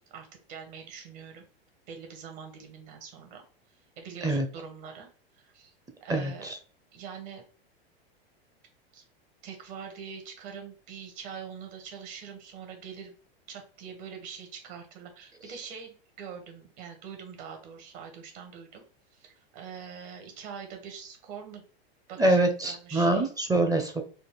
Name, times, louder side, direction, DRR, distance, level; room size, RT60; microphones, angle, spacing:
voice 1, 0.1-1.4 1.9-3.4 4.0-5.1 5.3-5.7 6.0-6.5 6.9-7.4 8.9-9.0 9.4-13.1 13.5-18.8 19.1-21.6 22.1-23.3, right 6 dB, 55° right, 4 dB, 1.5 m, -43 dB
voice 2, 6.1-6.6 22.2-24.0, right 2 dB, 10° right, 5 dB, 0.6 m, -25 dB
4.3 x 2.5 x 3.3 m, 0.39 s
hypercardioid pair, 95°, 31 cm